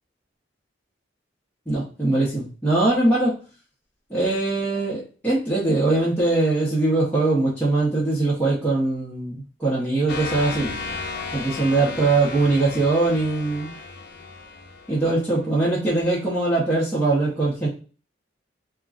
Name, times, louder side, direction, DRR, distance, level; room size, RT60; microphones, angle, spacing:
voice 1, 1.7-3.3 4.1-10.7 11.3-13.7 14.9-17.7, right 2 dB, 10° left, -9 dB, 0.7 m, -21 dB
sound 1, 10.1-15.5, left 4 dB, 60° left, 0.5 m, -34 dB
2.4 x 2.2 x 3.6 m, 0.37 s
head